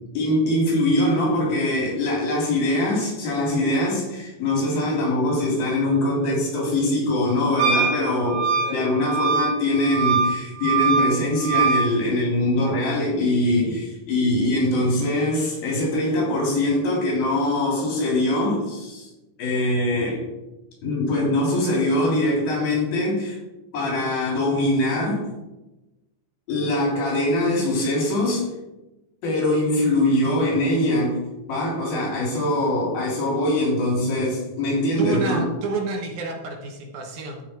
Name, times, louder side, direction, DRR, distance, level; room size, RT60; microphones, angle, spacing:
voice 1, 0.2-19.1 19.4-20.2 20.8-23.4 23.7-25.3 26.5-28.5 29.2-31.2 31.5-35.4, left 1 dB, 85° left, -3 dB, 5.2 m, -22 dB
Wind instrument woodwind instrument, 7.6-11.9, right 5 dB, 85° right, 3.0 m, -23 dB
voice 2, 35.0-37.5, right 3 dB, 65° right, 2 dB, 2.3 m, -29 dB
13.0 x 5.8 x 4.5 m, 1.0 s
omnidirectional pair, 4.0 m